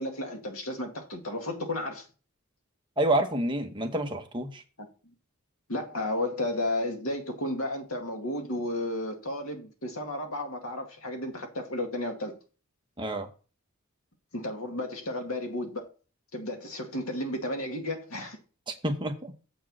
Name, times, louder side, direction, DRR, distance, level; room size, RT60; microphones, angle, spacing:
voice 1, 0.0-2.0 4.8-4.9 5.7-12.4 14.3-15.9 16.3-18.4, left 1 dB, 80° left, 2.0 m, -33 dB
voice 2, 3.0-4.6 13.0-13.3 18.7-19.3, right 1 dB, 20° right, 1.0 m, -28 dB
7.6 x 4.5 x 6.1 m
head